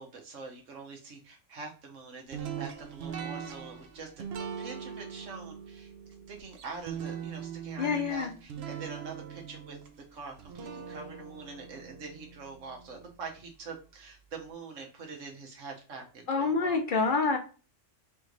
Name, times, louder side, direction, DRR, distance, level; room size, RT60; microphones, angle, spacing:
voice 1, 0.0-4.2 4.6-5.9 6.3-9.8 10.1-17.0, right 4 dB, 85° right, 2 dB, 1.5 m, -44 dB
sound 1, 2.3-13.4, right 7 dB, 65° right, 0.8 m, -41 dB
voice 2, 7.8-8.3 16.3-17.4, left 4 dB, 50° left, 4 dB, 0.7 m, -27 dB
3.4 x 3.0 x 3.9 m, 0.35 s
omnidirectional pair, 1.3 m